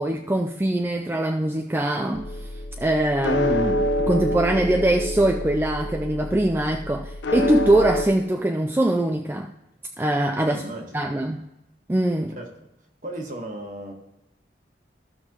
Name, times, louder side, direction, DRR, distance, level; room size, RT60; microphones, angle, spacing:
voice 1, 0.0-9.5 10.0-10.6 10.9-11.5 11.9-12.4, right 1 dB, 10° right, 3 dB, 0.3 m, -23 dB
sound 1, 2.1-8.1, left 1 dB, 80° left, 0.7 m, -27 dB
voice 2, 10.5-11.1 12.4-12.5 13.0-13.9, right 1 dB, 45° right, 1 dB, 1.5 m, -35 dB
15.0 x 6.1 x 2.9 m, 0.92 s
head